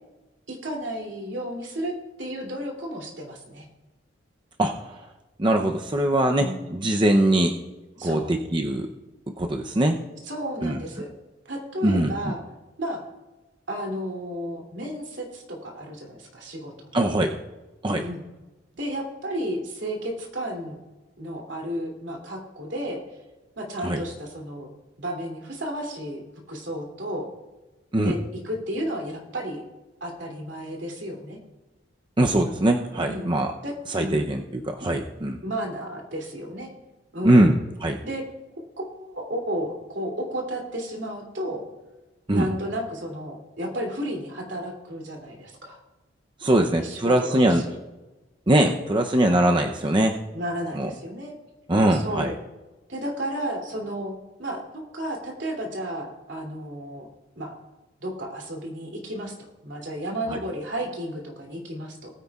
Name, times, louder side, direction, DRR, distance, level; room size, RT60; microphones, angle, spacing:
voice 1, 0.5-3.7 6.4-6.7 8.0-8.3 10.3-11.1 11.4-12.4 12.8-13.0 13.7-17.0 18.0-18.2 18.8-20.8 21.2-23.0 23.6-24.7 25.0-26.2 26.5-27.3 28.0-28.2 28.4-29.6 30.0-31.4 33.0-33.3 33.6-33.7 34.0-34.3 35.4-36.7 37.1-37.6 38.0-38.2 38.8-41.6 42.3-45.8 46.8-47.7 48.7-48.8 50.3-51.3 51.9-52.3 52.9-54.1 54.4-57.1 57.4-57.6 58.0-59.3 59.6-62.1, equal, 70° right, 1 dB, 2.9 m, -32 dB
voice 2, 4.6-5.1 5.4-7.5 8.0-8.9 9.4-10.0 10.6-10.8 11.8-12.4 16.9-17.3 17.8-18.0 23.8-24.0 27.9-28.1 32.2-33.5 33.9-35.4 37.2-38.0 42.3-42.5 46.4-47.6 48.5-50.2 50.7-50.9 51.7-52.3 60.3-60.4, right 1 dB, 25° right, 3 dB, 0.6 m, -22 dB
19.5 x 9.4 x 2.4 m, 1.1 s
head